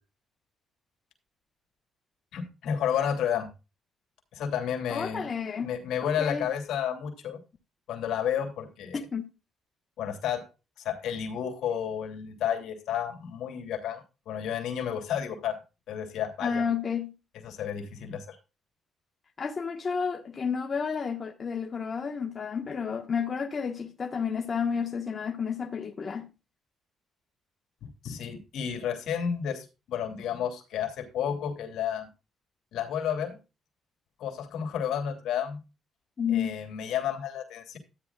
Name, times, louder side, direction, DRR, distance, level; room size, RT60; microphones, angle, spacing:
voice 1, 2.3-3.5 4.3-5.3 5.6-7.4 7.9-9.0 10.0-10.4 10.8-15.6 15.9-16.6 17.4-18.4 27.8-32.1 32.7-33.4 34.2-35.6 36.3-37.8, left 8 dB, 80° left, 2.8 m, -31 dB
voice 2, 4.9-5.7 6.2-6.5 8.9-9.2 16.4-17.1 19.4-26.3 36.2-36.5, left 6 dB, 40° left, 1.4 m, -31 dB
12.5 x 9.6 x 2.4 m
cardioid pair, 90°, 0 cm